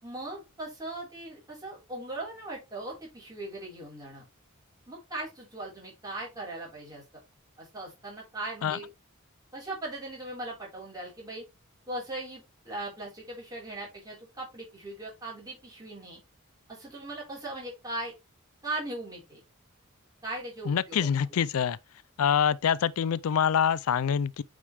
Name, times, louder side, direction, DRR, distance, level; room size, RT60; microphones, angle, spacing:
voice 1, 0.0-4.3 4.9-7.0 7.6-8.9 9.5-11.4 11.9-16.2 16.7-18.1 18.6-19.4 20.2-21.4, right 2 dB, 20° right, 4.5 m, -39 dB
voice 2, 20.7-21.8 22.2-24.4, left 8 dB, 90° left, 0.4 m, -25 dB
8.5 x 5.1 x 3.3 m
head